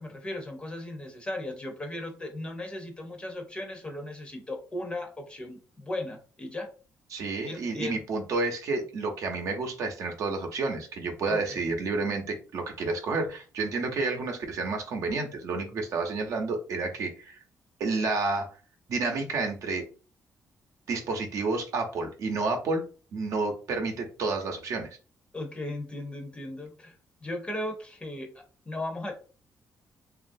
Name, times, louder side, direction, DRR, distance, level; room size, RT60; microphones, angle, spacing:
voice 1, 0.0-6.7 7.4-8.0 11.2-11.6 25.3-26.9 27.2-29.1, left 1 dB, 20° left, 3 dB, 0.6 m, -37 dB
voice 2, 7.1-17.4 17.8-18.5 18.9-19.9 20.9-22.8 23.1-24.9, right 3 dB, 65° right, 3 dB, 0.7 m, -30 dB
3.0 x 2.4 x 2.5 m, 0.36 s
cardioid pair, 155°, 6 cm